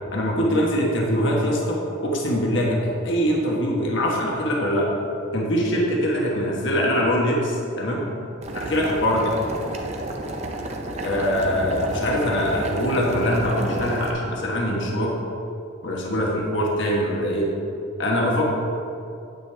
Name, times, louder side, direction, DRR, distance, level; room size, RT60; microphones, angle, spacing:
voice 1, 0.1-2.8 3.0-4.9 5.3-8.0 8.5-9.3 11.0-15.1 15.8-17.5 18.0-18.5, equal, 55° left, -2 dB, 1.3 m, -23 dB
Boiling, 8.4-14.1, right 1 dB, 30° right, 0.7 m, -31 dB
9.1 x 8.8 x 3.4 m, 2.6 s
head